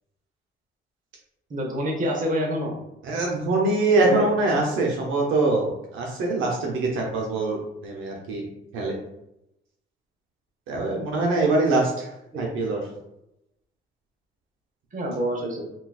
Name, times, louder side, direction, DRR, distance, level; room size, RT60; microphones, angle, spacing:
voice 1, 1.5-2.7 4.0-4.3 12.3-12.4 14.9-15.7, equal, 40° right, 0 dB, 0.9 m, -26 dB
voice 2, 3.0-8.5 8.7-9.0 10.7-12.1 12.3-12.9, right 2 dB, 85° right, -1 dB, 0.7 m, -23 dB
3.8 x 2.3 x 2.3 m, 0.86 s
cardioid pair, 90°, 20 cm